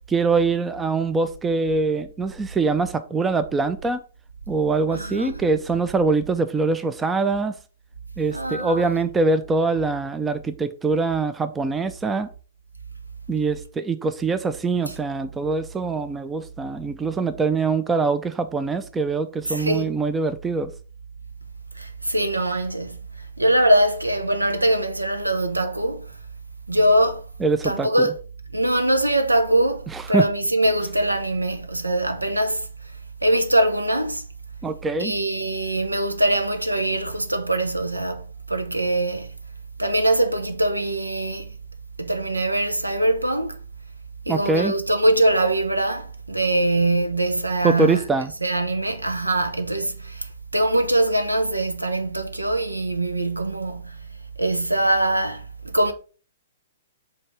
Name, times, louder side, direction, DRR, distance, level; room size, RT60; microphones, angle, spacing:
voice 1, 0.1-4.0 4.5-7.6 8.2-12.3 13.3-20.7 27.4-28.1 29.9-30.3 34.6-35.1 44.3-44.7 47.6-48.3, right 3 dB, 10° right, 0.5 m, -23 dB
voice 2, 4.9-5.4 8.3-9.0 19.5-19.9 21.8-23.0 23.4-26.0 26.7-27.2 27.6-28.1 28.5-32.7 33.2-34.2 35.0-39.3 39.8-41.5 42.0-43.6 44.3-48.0 48.4-50.3 50.5-54.0 54.4-55.9, right 1 dB, 90° right, 1.0 m, -22 dB
5.4 x 3.5 x 5.7 m
figure-of-eight pair, 115°, 0 cm